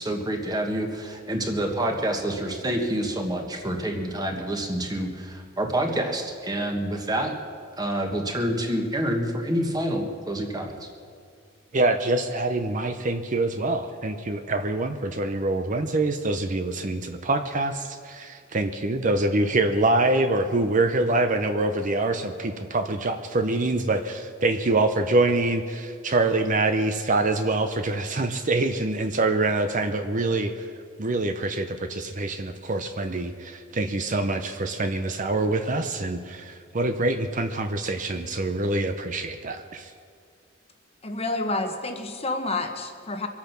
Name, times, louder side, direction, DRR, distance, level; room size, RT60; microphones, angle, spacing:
voice 1, 0.0-7.3 7.8-10.9, right 1 dB, 20° right, 3 dB, 1.5 m, -27 dB
voice 2, 11.7-30.7 31.0-39.9, right 2 dB, 40° right, 7 dB, 0.7 m, -25 dB
voice 3, 41.0-43.3, left 2 dB, 30° left, 5 dB, 1.1 m, -29 dB
24.0 x 8.6 x 5.9 m, 2.2 s
head